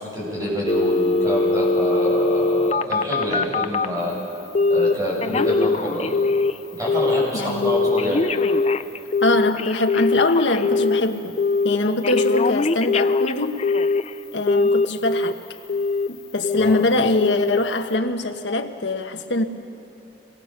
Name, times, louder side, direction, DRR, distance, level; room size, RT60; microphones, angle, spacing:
voice 1, 0.0-4.1 4.7-6.1 6.8-8.2 16.6-16.8, left 1 dB, 20° right, 7.9 m, -26 dB
Telephone, 0.7-4.0 4.6-4.9 5.2-6.6 6.9-7.3 7.6-11.0 11.4-11.8 12.0-14.1 14.5-15.3 15.7-16.1 16.4-16.8 17.2-17.6 17.9-18.0, left 3 dB, 35° left, 0.5 m, -21 dB
voice 2, 7.3-7.7 9.2-11.4 11.6-13.7 14.3-15.4 16.1-19.4, left 2 dB, 85° left, 1.3 m, -23 dB
26.5 x 21.5 x 6.8 m
head